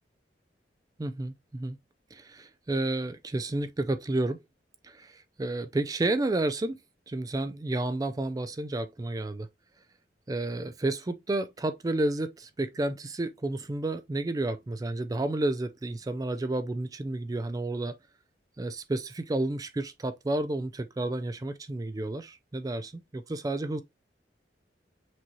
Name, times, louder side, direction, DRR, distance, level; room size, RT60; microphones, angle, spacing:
voice 1, 1.0-1.8 2.1-4.4 4.8-6.8 7.1-9.5 10.3-18.0 18.6-23.8, right 2 dB, 20° right, 0.3 m, -31 dB
6.0 x 3.0 x 2.7 m
head